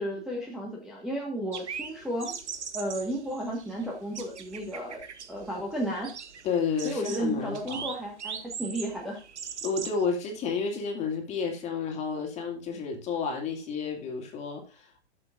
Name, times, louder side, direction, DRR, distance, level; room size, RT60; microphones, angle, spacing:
voice 1, 0.0-2.3 2.7-5.0 5.3-6.1 6.8-9.2, right 1 dB, ahead, -2 dB, 1.5 m, -33 dB
sound 1, 1.5-10.0, right 7 dB, 80° right, 1.7 m, -40 dB
voice 2, 6.4-7.8 9.6-15.1, left 5 dB, 20° left, 3 dB, 2.6 m, -31 dB
13.0 x 7.7 x 2.5 m, 0.31 s
hypercardioid pair, 145°, 34 cm